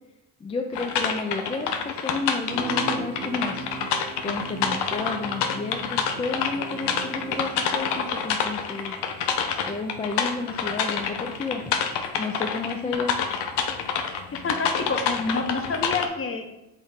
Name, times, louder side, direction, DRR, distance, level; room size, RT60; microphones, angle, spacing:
voice 1, 0.4-3.7 4.2-9.0 9.7-11.6 12.2-13.2, left 3 dB, 15° left, 3 dB, 0.3 m, -31 dB
sound 1, 0.7-16.1, left 6 dB, 80° left, 0.6 m, -27 dB
sound 2, 2.5-8.3, right 5 dB, 75° right, 0.6 m, -38 dB
voice 2, 14.3-16.6, left 4 dB, 35° left, 5 dB, 0.8 m, -29 dB
3.5 x 3.5 x 4.2 m, 0.93 s
supercardioid pair, 65°, 40 cm